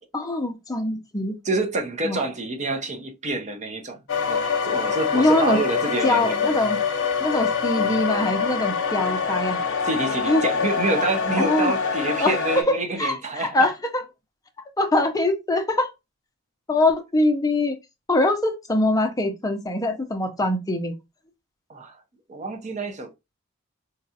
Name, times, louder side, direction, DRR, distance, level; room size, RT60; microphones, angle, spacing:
voice 1, 0.1-1.3 2.0-2.2 5.1-5.6 6.0-6.8 7.2-9.6 10.3-10.4 11.4-11.7 12.2-14.0 14.8-15.9 16.7-17.8 18.1-20.9, left 2 dB, 15° left, 0.5 m, -23 dB
voice 2, 1.4-4.0 4.3-6.5 9.8-13.7 21.7-21.9 22.3-23.2, right 2 dB, 35° right, 0.6 m, -27 dB
sound 1, 4.1-12.6, left 5 dB, 60° left, 0.7 m, -25 dB
3.9 x 2.3 x 2.7 m
head